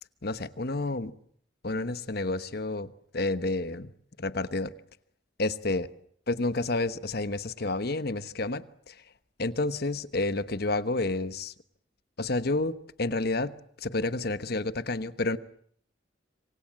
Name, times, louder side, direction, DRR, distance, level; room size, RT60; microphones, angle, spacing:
voice 1, 0.2-1.1 1.6-3.9 4.2-4.7 5.4-5.9 6.3-9.0 9.4-11.5 12.2-15.4, left 2 dB, 55° left, 13 dB, 1.1 m, -30 dB
27.0 x 25.0 x 7.6 m, 0.65 s
head